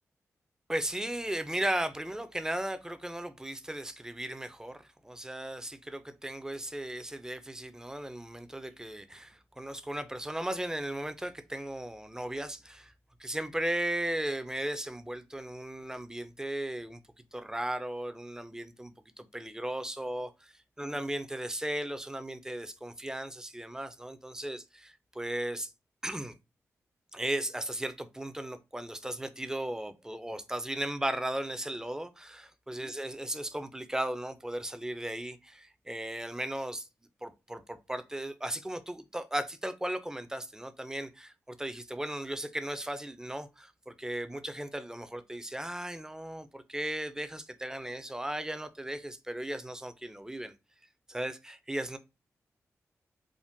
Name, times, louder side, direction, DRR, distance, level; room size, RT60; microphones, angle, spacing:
voice 1, 0.7-12.9 13.2-25.7 26.0-26.3 27.1-36.9 37.2-50.5 51.1-52.0, right 1 dB, 10° right, 0.4 m, -36 dB
3.6 x 2.1 x 2.6 m
cardioid pair, 55°, 6 cm